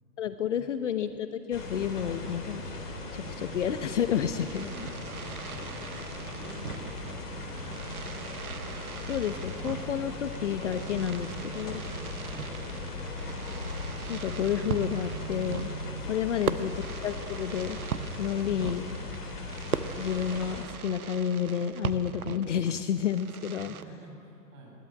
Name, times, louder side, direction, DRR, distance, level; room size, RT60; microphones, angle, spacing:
voice 1, 0.2-2.6 3.1-5.0 9.1-11.8 14.1-15.7 16.1-16.7 17.0-17.8 18.2-18.9 20.0-23.7, left 8 dB, 45° left, 10 dB, 1.0 m, -30 dB
sound 1, 1.5-20.7, left 2 dB, 65° left, 4.2 m, -38 dB
Fireworks, 4.0-23.8, right 7 dB, 60° right, 1.2 m, -40 dB
voice 2, 5.3-7.9 12.3-12.6 18.5-18.7 23.7-24.7, right 2 dB, 25° right, -1 dB, 7.3 m, -49 dB
22.0 x 18.5 x 9.1 m, 2.5 s
figure-of-eight pair, 125°, 50 cm